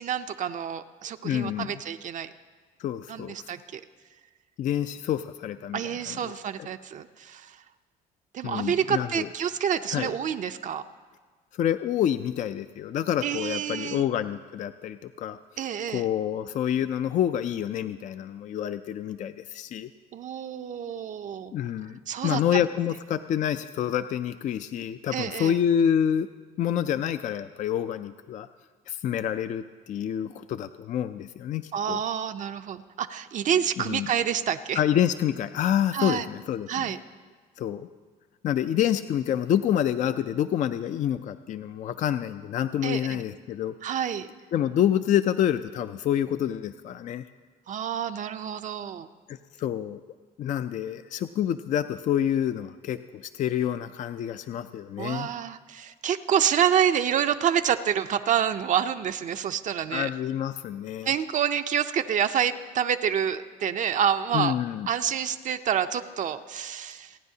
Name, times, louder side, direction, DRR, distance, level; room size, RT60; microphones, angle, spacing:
voice 1, 0.0-2.3 3.1-3.8 5.7-7.6 8.3-10.8 13.2-14.1 15.6-16.1 20.1-21.5 22.1-22.6 25.1-25.5 31.7-34.8 35.9-36.3 36.7-37.0 42.8-43.2 43.8-44.3 47.7-49.1 55.0-60.1 61.0-64.6 64.9-67.2, right 9 dB, 50° right, 8 dB, 0.5 m, -28 dB
voice 2, 1.2-1.8 2.8-3.5 4.6-5.8 6.1-6.3 8.4-9.3 9.9-10.1 11.5-15.4 15.9-19.9 21.5-26.3 26.6-28.5 28.9-32.0 33.9-34.1 34.8-36.9 37.6-37.9 38.4-43.8 44.5-47.2 49.3-50.0 50.4-55.3 59.9-61.1 64.3-64.9, left 10 dB, 50° left, 11 dB, 0.4 m, -27 dB
28.5 x 9.5 x 2.8 m, 1.5 s
cardioid pair, 110°, 17 cm